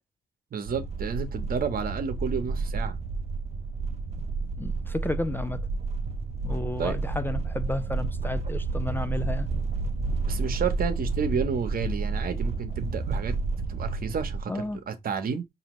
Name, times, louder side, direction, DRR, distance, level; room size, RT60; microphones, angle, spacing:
voice 1, 0.5-3.0 6.8-7.0 10.3-13.3 13.7-15.5, right 6 dB, 55° right, 1.0 m, -31 dB
sound 1, 0.7-14.4, right 3 dB, 40° right, 0.6 m, -30 dB
voice 2, 4.6-5.7 6.4-9.5 14.5-14.8, left 2 dB, 10° left, 0.3 m, -32 dB
4.9 x 2.7 x 3.1 m
cardioid pair, 90°, 18 cm